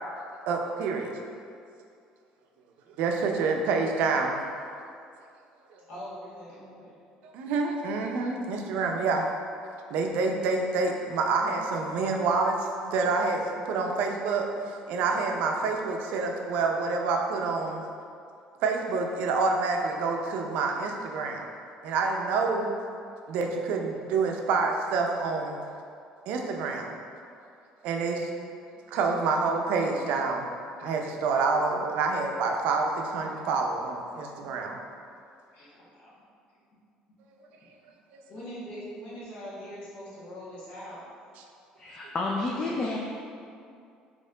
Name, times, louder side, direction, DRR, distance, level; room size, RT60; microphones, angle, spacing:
voice 1, 0.5-1.1 3.0-4.4 5.7-5.8 7.3-9.3 9.9-14.4 14.9-17.8 18.6-21.5 21.8-22.7 23.3-25.6 26.3-27.0 27.8-28.3 28.9-30.5 30.8-34.8 38.1-38.2, right 4 dB, 75° right, 2 dB, 0.5 m, -27 dB
voice 2, 5.9-7.0 35.5-36.1 38.3-41.0, equal, 60° left, -8 dB, 1.5 m, -42 dB
voice 3, 41.8-43.0, left 2 dB, 30° left, -2 dB, 0.3 m, -30 dB
4.2 x 3.0 x 3.8 m, 2.4 s
cardioid pair, 150°, 2 cm